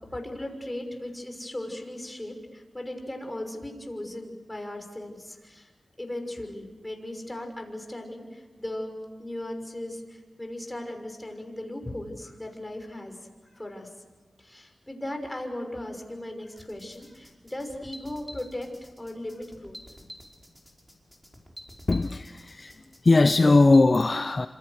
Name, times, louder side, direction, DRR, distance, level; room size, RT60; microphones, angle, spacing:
voice 1, 0.0-5.7 6.0-8.9 9.2-13.2 13.4-13.9 14.4-18.7 19.0-19.8, left 1 dB, 15° left, 4 dB, 6.0 m, -37 dB
sound 1, 16.6-23.8, equal, ahead, 5.3 m, -48 dB
voice 2, 21.9-24.5, left 3 dB, 45° left, 10 dB, 0.9 m, -20 dB
27.5 x 27.0 x 6.6 m, 1.2 s
wide cardioid pair, 65°, 0 cm